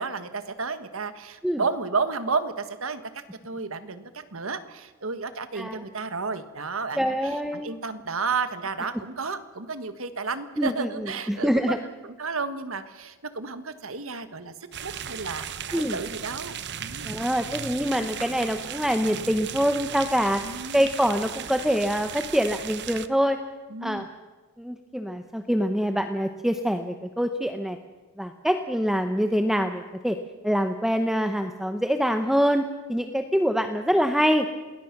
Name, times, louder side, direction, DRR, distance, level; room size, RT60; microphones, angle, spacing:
voice 1, 0.0-14.5 14.8-17.1 20.4-20.9 23.7-24.1, right 4 dB, 70° right, 11 dB, 1.6 m, -32 dB
voice 2, 7.0-7.7 10.6-11.8 15.7-16.0 17.0-20.4 20.7-23.4 23.8-24.1 24.6-27.8 28.2-30.2 30.4-34.5, equal, ahead, 7 dB, 0.9 m, -25 dB
sound 1, 14.7-23.1, right 8 dB, 55° right, 1.0 m, -36 dB
28.0 x 20.0 x 6.0 m, 1.3 s
head